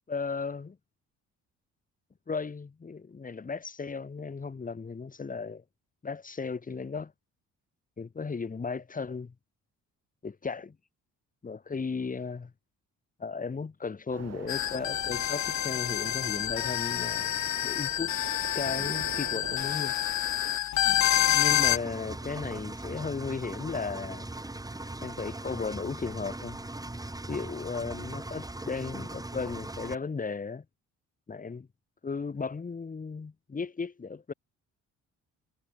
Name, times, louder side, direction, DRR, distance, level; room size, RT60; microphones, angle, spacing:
voice 1, 0.1-0.8 2.3-5.6 6.0-7.1 8.0-9.3 10.2-10.7 11.4-12.5 13.2-18.1 18.5-19.9 20.8-21.0 21.2-24.3 25.0-26.6 27.3-30.6 31.3-31.7 32.0-34.3, left 5 dB, 25° left, 1.7 m, -35 dB
sound 1, 14.1-20.6, right 9 dB, 55° right, 3.5 m, -44 dB
sound 2, 14.5-21.8, left 13 dB, 65° left, 0.9 m, -28 dB
Engine, 21.5-29.9, right 2 dB, 10° right, 4.8 m, -39 dB
cardioid pair, 90°, 30 cm